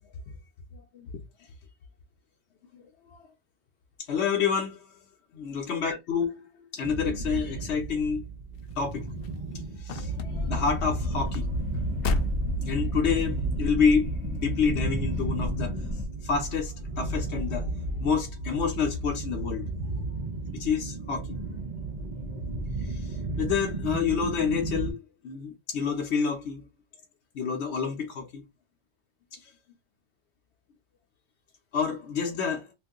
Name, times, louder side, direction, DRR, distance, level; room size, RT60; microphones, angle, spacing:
voice 1, 4.1-4.9 5.3-6.4 6.7-8.2 8.8-9.1 9.8-11.5 12.6-15.7 16.2-17.7 18.0-19.7 20.5-21.4 22.8-26.6 27.3-28.4 29.3-29.5 31.7-32.7, left 6 dB, 80° left, 1.0 m, -28 dB
sound 1, 6.8-24.9, right 2 dB, 45° right, 0.8 m, -33 dB
sound 2, 8.6-13.4 14.0-14.4 14.8-14.9, left 3 dB, 65° left, 0.7 m, -35 dB
sound 3, 10.3-16.1, left 2 dB, 25° right, 1.2 m, -33 dB
2.6 x 2.6 x 3.7 m
omnidirectional pair, 1.1 m